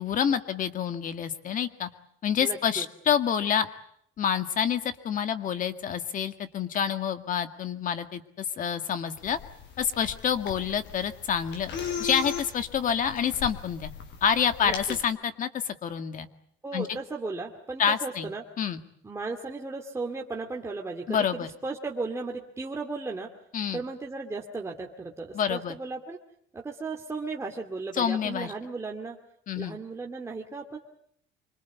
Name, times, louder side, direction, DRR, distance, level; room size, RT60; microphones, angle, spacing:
voice 1, 0.0-1.9 2.2-3.7 4.2-9.4 9.8-11.7 12.0-13.9 14.2-16.3 16.7-16.9 17.8-18.3 18.6-18.8 21.1-21.5 23.5-23.8 25.3-25.7 27.9-28.5 29.5-29.8, left 8 dB, 40° left, 9 dB, 2.0 m, -27 dB
voice 2, 2.4-2.8 14.6-15.0 16.6-18.4 19.0-23.3 23.7-26.2 26.5-29.2 29.6-30.8, right 3 dB, 15° right, 0 dB, 2.4 m, -35 dB
sound 1, 9.2-15.0, left 7 dB, 60° left, 5.8 m, -38 dB
25.5 x 25.5 x 8.3 m, 0.69 s
cardioid pair, 165°, 20 cm